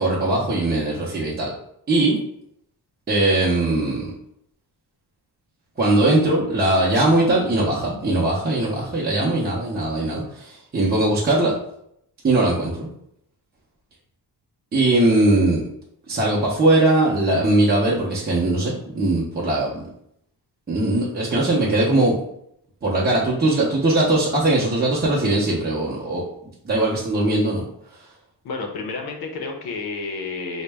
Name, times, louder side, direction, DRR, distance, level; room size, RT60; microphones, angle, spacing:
voice 1, 0.0-1.5 1.9-2.2 3.1-4.1 5.8-11.5 12.2-12.9 14.7-15.6 16.1-19.9 20.7-22.2 22.8-26.2 26.6-27.6, right 2 dB, 25° right, -5 dB, 0.7 m, -20 dB
voice 2, 28.4-30.6, left 4 dB, 70° left, 2 dB, 0.7 m, -30 dB
3.9 x 2.1 x 3.4 m, 0.73 s
cardioid pair, 120°, 39 cm